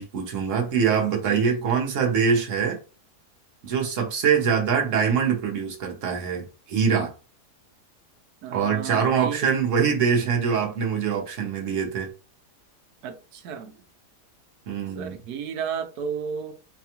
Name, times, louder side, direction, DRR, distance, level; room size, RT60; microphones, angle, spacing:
voice 1, 0.0-2.8 3.6-7.1 8.5-12.1 14.7-15.2, right 6 dB, 55° right, 1.2 m, -24 dB
voice 2, 1.3-1.6 8.4-9.5 13.0-13.8 14.9-16.5, right 7 dB, 75° right, 1.1 m, -33 dB
4.2 x 2.3 x 2.9 m
omnidirectional pair, 1.7 m